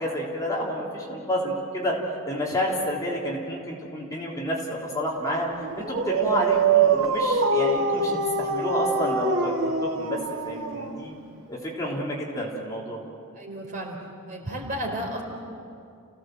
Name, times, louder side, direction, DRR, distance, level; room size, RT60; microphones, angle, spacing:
voice 1, 0.0-2.0 2.2-5.5 5.8-10.2 10.4-11.1 11.5-13.0, equal, 15° left, -4 dB, 3.5 m, -29 dB
Dog, 5.6-11.3, right 4 dB, 75° right, 2.2 m, -24 dB
voice 2, 13.3-14.0 14.3-15.2, equal, 40° right, 1 dB, 4.0 m, -32 dB
30.0 x 17.0 x 7.9 m, 2.5 s
head